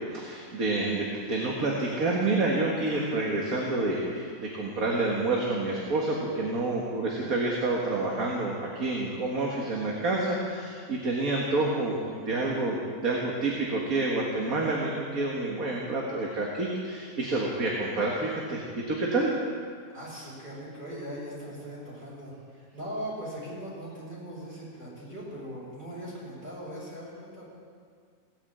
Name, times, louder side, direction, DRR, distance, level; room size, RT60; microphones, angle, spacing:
voice 1, 0.1-12.8 13.0-19.3, right 2 dB, 65° right, -3 dB, 2.2 m, -28 dB
voice 2, 19.9-27.4, equal, 30° right, -8 dB, 6.0 m, -40 dB
17.5 x 9.3 x 8.1 m, 2.1 s
omnidirectional pair, 1.6 m